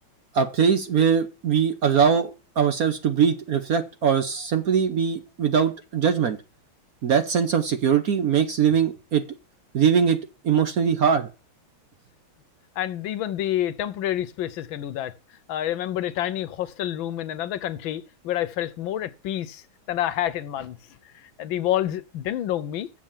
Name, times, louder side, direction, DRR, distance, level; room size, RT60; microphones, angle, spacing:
voice 1, 0.3-6.4 7.0-9.2 9.7-10.2 10.4-11.3, right 7 dB, 55° right, 1.1 m, -21 dB
voice 2, 12.8-15.1 15.5-20.8 21.1-22.9, left 12 dB, 75° left, 1.4 m, -28 dB
7.4 x 7.1 x 7.2 m
omnidirectional pair, 2.3 m